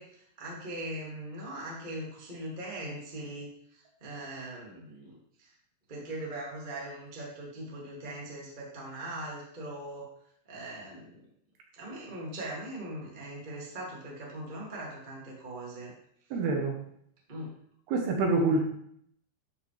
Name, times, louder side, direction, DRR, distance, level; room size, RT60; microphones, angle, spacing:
voice 1, 0.0-5.5 5.9-10.1 10.4-11.2 11.8-15.9 17.3-17.5 18.3-18.6, right 1 dB, 30° right, -4 dB, 0.9 m, -40 dB
voice 2, 16.3-16.8 17.9-18.6, right 3 dB, 70° right, 2 dB, 2.6 m, -26 dB
12.5 x 5.8 x 3.3 m, 0.68 s
omnidirectional pair, 5.3 m